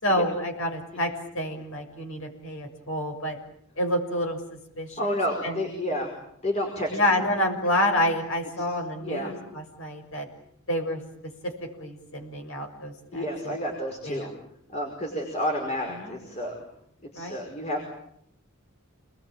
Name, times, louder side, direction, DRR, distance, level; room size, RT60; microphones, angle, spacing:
voice 1, 0.0-3.4 3.8-4.4 4.8-5.2 5.4-5.6 6.9-10.3 10.7-11.0 11.4-13.6 14.0-14.3 16.0-16.2 17.1-17.4, left 1 dB, 65° left, 4 dB, 6.8 m, -28 dB
voice 2, 5.0-6.1 6.4-7.2 8.6-8.7 9.0-9.3 13.1-14.3 14.7-16.6 17.1-17.9, equal, 30° left, 1 dB, 5.5 m, -30 dB
29.0 x 21.0 x 9.0 m, 0.72 s
head